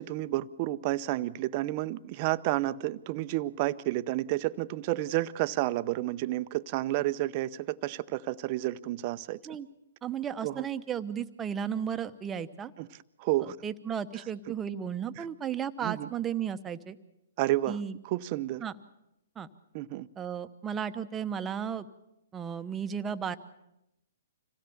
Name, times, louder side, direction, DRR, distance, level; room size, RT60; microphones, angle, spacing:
voice 1, 0.0-9.4 10.4-10.7 12.8-12.9 13.2-13.6 15.2-15.3 15.8-16.1 17.4-17.8 18.0-18.6 19.7-20.1, right 16 dB, 40° right, 0.7 m, -30 dB
voice 2, 10.0-12.7 13.4-17.0 17.7-18.0 18.6-18.7 19.4-19.5 20.2-21.9 22.3-23.4, right 8 dB, 15° right, 1.0 m, -34 dB
26.0 x 17.0 x 7.1 m
hypercardioid pair, 135°, 0 cm